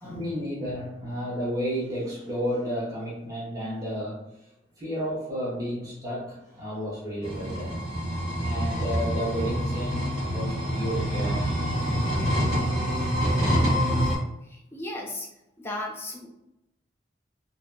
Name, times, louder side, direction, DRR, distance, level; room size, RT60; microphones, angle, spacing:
voice 1, 0.0-4.2 4.8-7.9 8.4-11.7, equal, 20° right, -7 dB, 0.7 m, -32 dB
sound 1, 7.2-14.2, equal, 65° right, 1.2 m, -26 dB
voice 2, 13.5-14.1 14.5-15.3 15.6-16.3, left 1 dB, 10° left, -1 dB, 0.4 m, -36 dB
2.7 x 2.2 x 2.3 m, 0.85 s
head